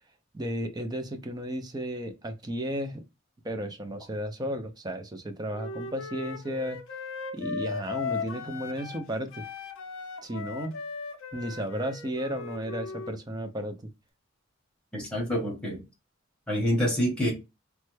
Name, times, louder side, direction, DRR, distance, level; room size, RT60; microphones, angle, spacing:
voice 1, 0.3-3.0 3.4-6.8 7.3-9.4 10.2-10.8 11.3-13.8, equal, 20° right, 0.4 m, -33 dB
Wind instrument woodwind instrument, 5.5-9.1 9.3-13.2, left 4 dB, 65° left, 0.5 m, -37 dB
voice 2, 14.9-15.8 16.5-17.3, equal, 5° left, 1.1 m, -27 dB
3.2 x 2.2 x 3.1 m
head